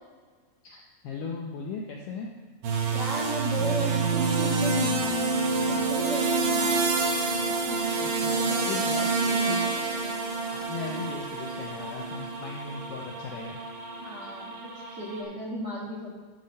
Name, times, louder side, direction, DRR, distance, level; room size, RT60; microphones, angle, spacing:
voice 1, 0.6-2.3 8.0-9.8 10.4-13.6 14.2-14.3, left 5 dB, 75° left, 0 dB, 2.0 m, -38 dB
sound 1, 2.6-15.2, right 4 dB, 80° right, 3.1 m, -28 dB
voice 2, 2.9-5.3 5.7-6.8 8.3-10.2 14.0-16.1, right 1 dB, 40° right, -6 dB, 1.5 m, -35 dB
10.5 x 4.2 x 6.4 m, 1.5 s
omnidirectional pair, 4.6 m